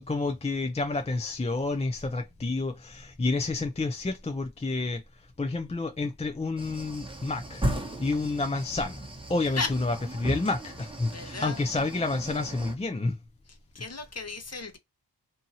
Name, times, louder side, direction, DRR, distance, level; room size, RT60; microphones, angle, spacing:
voice 1, 0.0-5.0 5.4-7.7 8.0-9.0 9.3-13.2, left 3 dB, 15° left, 0.4 m, -29 dB
sound 1, 6.6-12.7, right 1 dB, 15° right, 1.1 m, -36 dB
voice 2, 11.1-11.6 13.7-14.8, left 3 dB, 40° left, 0.9 m, -34 dB
2.7 x 2.7 x 2.6 m
cardioid pair, 50°, 40 cm